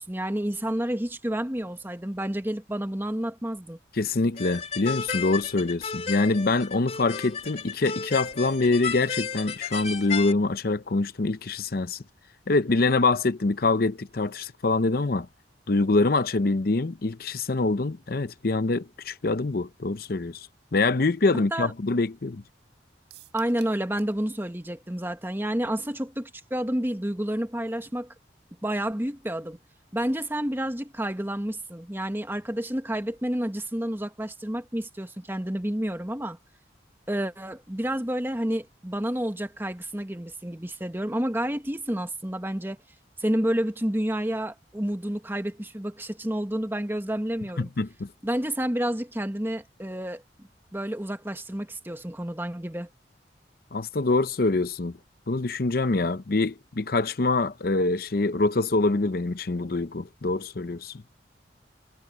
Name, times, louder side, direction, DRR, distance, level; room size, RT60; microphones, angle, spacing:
voice 1, 0.0-3.8 21.5-21.7 23.3-28.1 28.6-29.6 29.9-36.4 37.1-42.8 43.2-47.7 48.2-52.9, right 1 dB, 10° right, 1.3 m, -30 dB
voice 2, 3.9-12.0 12.5-15.3 15.7-22.4 47.6-48.1 53.7-54.9 55.3-61.0, left 3 dB, 55° left, 0.7 m, -25 dB
sound 1, 4.4-10.3, left 6 dB, 35° left, 2.4 m, -33 dB
sound 2, 23.1-24.2 24.5-24.6 24.9-25.0, right 11 dB, 75° right, 4.8 m, -52 dB
head